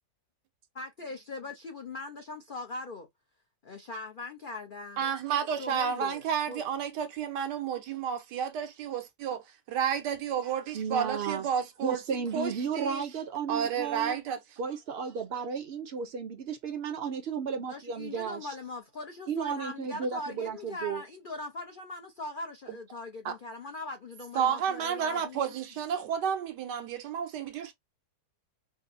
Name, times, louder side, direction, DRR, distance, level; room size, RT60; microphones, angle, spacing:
voice 1, 0.7-3.1 3.6-5.1 5.6-6.6 17.6-25.6, left 2 dB, 65° left, 0.5 m, -41 dB
voice 2, 5.0-12.0 12.3-13.0 13.5-14.4 23.2-23.3 24.3-27.7, right 8 dB, 85° right, 1.4 m, -31 dB
voice 3, 10.7-11.5 11.8-14.2 14.6-18.5 19.3-21.0, right 6 dB, 55° right, 0.7 m, -33 dB
4.7 x 2.0 x 2.6 m
omnidirectional pair, 1.8 m